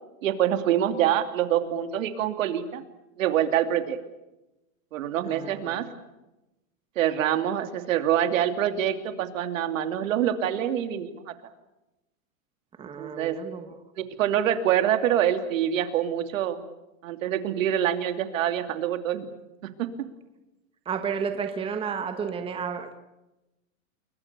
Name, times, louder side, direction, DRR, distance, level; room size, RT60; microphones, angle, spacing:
voice 1, 0.2-2.8 3.2-4.0 4.9-5.8 7.0-11.1 12.8-13.4 14.0-16.6 17.0-19.2 19.8-19.9, right 10 dB, 70° right, 2.9 m, -25 dB
voice 2, 5.2-5.8 12.8-13.8 20.8-23.0, right 6 dB, 15° right, 1.4 m, -32 dB
29.5 x 22.5 x 6.9 m
supercardioid pair, 155°, 41 cm